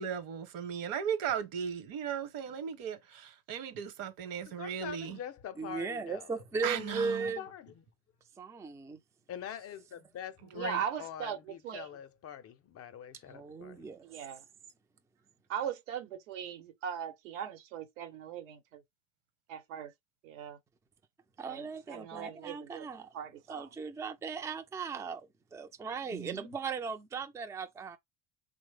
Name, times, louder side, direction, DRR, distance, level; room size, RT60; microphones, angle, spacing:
voice 1, 0.0-5.2 6.6-7.3 10.5-10.8 26.1-26.5, right 8 dB, 60° right, 1.0 m, -37 dB
voice 2, 4.6-6.4 6.7-6.9 7.2-7.8 9.3-13.9, left 9 dB, 40° left, 0.5 m, -44 dB
voice 3, 5.6-7.4 8.4-9.0 13.3-14.0 21.4-23.1 23.5-28.0, right 5 dB, 10° right, 0.4 m, -37 dB
voice 4, 10.5-11.9 14.0-14.4 15.5-18.8 19.5-19.9 20.2-20.6 21.5-22.9 23.1-23.7, right 8 dB, 85° right, 0.9 m, -39 dB
3.2 x 2.0 x 3.2 m
supercardioid pair, 85°, 37 cm